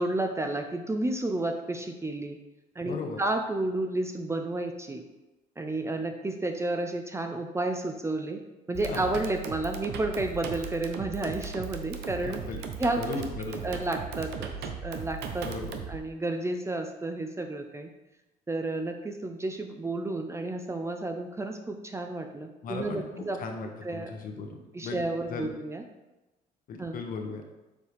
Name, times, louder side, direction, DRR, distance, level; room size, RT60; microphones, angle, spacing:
voice 1, 0.0-2.4 2.8-5.0 5.6-8.4 8.7-12.4 12.8-13.2 13.5-14.5 14.8-17.9 18.5-24.1 24.7-25.8 26.8-27.0, right 2 dB, 15° right, 5 dB, 0.5 m, -31 dB
voice 2, 2.8-3.2 8.9-9.2 12.2-12.6 13.0-13.7 15.4-15.8 22.6-25.0 25.3-25.5 26.7-27.4, left 4 dB, 55° left, 3 dB, 1.1 m, -37 dB
sound 1, 8.7-16.0, right 6 dB, 80° right, 0.8 m, -37 dB
7.0 x 4.6 x 3.4 m, 1.0 s
cardioid pair, 110°, 17 cm